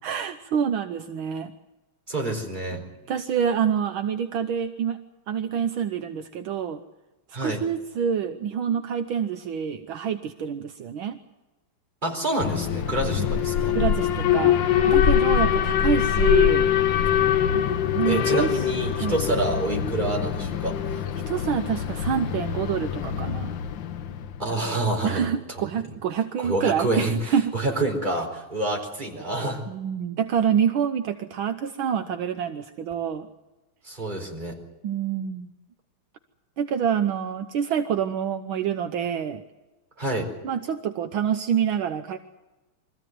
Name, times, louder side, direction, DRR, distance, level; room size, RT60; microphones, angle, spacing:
voice 1, 0.0-1.5 3.1-5.0 5.3-6.8 7.4-11.2 13.2-13.3 13.8-14.6 14.9-16.7 17.5-17.7 17.9-18.7 18.9-19.2 21.3-23.6 24.5-27.5 29.7-33.3 34.8-35.5 36.6-39.4 40.4-42.2, right 8 dB, 70° right, 7 dB, 1.7 m, -27 dB
voice 2, 2.1-2.8 7.3-7.6 12.0-13.8 18.1-21.0 24.4-25.6 26.4-29.6 33.8-34.6 40.0-40.3, right 2 dB, 20° right, 0 dB, 4.5 m, -28 dB
Alarm, 12.4-24.4, left 9 dB, 65° left, 1.6 m, -23 dB
24.0 x 15.0 x 9.4 m, 1.1 s
omnidirectional pair, 2.3 m